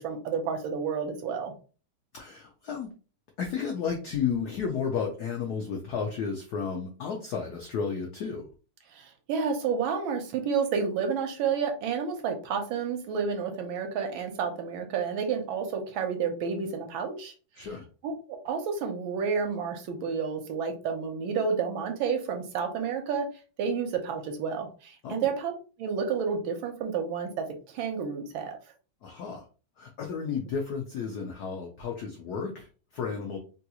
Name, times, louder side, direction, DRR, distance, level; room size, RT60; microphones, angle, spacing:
voice 1, 0.0-1.5 8.9-17.7 18.0-23.3 23.6-25.5 25.8-28.6, right 6 dB, 75° right, 4 dB, 1.4 m, -30 dB
voice 2, 2.1-2.9 3.4-8.5 17.6-17.8 25.0-25.3 29.0-29.4 29.8-33.4, left 6 dB, 85° left, 2 dB, 0.8 m, -32 dB
3.7 x 2.3 x 2.8 m, 0.36 s
omnidirectional pair, 2.3 m